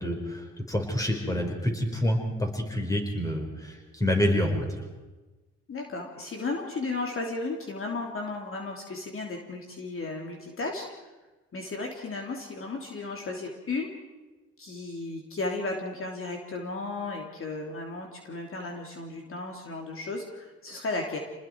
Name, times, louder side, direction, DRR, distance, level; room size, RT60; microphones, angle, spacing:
voice 1, 0.0-4.8, equal, 10° left, 2 dB, 5.0 m, -28 dB
voice 2, 5.7-10.8 11.5-13.9 14.6-21.2, left 3 dB, 45° left, 1 dB, 3.0 m, -34 dB
28.0 x 20.0 x 4.7 m, 1.2 s
cardioid pair, 90°, 30 cm